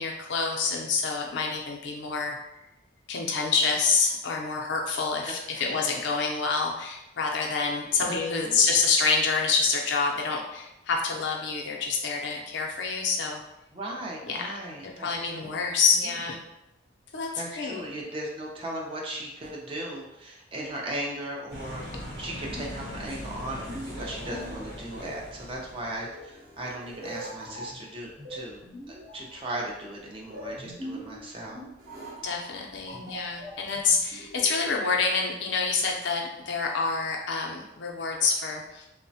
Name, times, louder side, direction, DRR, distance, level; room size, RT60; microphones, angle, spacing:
voice 1, 0.0-2.4 3.1-13.4 14.2-14.6 14.8-16.4 17.1-17.8 32.2-38.9, left 4 dB, 70° left, 0 dB, 0.5 m, -27 dB
voice 2, 13.7-15.6 16.0-16.1 17.4-21.8 22.2-31.6, right 1 dB, 30° right, -2 dB, 0.4 m, -37 dB
sound 1, 21.5-26.1, equal, 85° right, 0.9 m, -40 dB
sound 2, 22.1-34.5, equal, 50° right, 0.9 m, -43 dB
3.0 x 2.0 x 2.6 m, 0.90 s
head